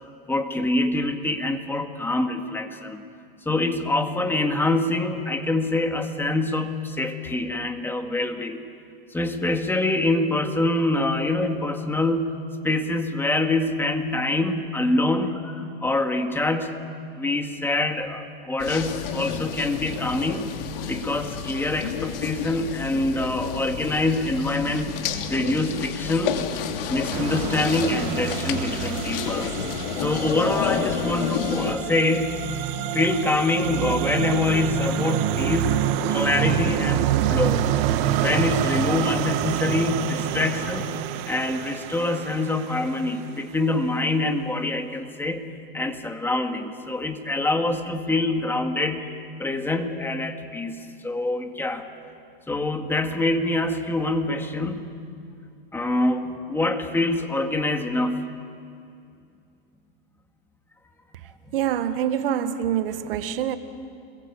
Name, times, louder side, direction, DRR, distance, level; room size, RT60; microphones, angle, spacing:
voice 1, 0.3-3.0 3.5-8.7 9.1-12.4 12.6-16.7 17.2-20.5 20.9-25.0 25.3-26.4 26.9-29.6 30.0-32.4 32.9-37.7 38.2-40.9 41.3-45.4 45.7-49.0 49.4-51.9 52.5-54.9 55.7-58.3, left 2 dB, 5° left, 1.9 m, -25 dB
sound 1, 18.6-31.8, left 7 dB, 70° left, 3.0 m, -30 dB
sound 2, 27.1-43.2, right 11 dB, 50° right, 1.8 m, -27 dB
voice 2, 61.5-63.6, right 9 dB, 75° right, 1.6 m, -25 dB
28.5 x 21.0 x 8.6 m
supercardioid pair, 135°, 29 cm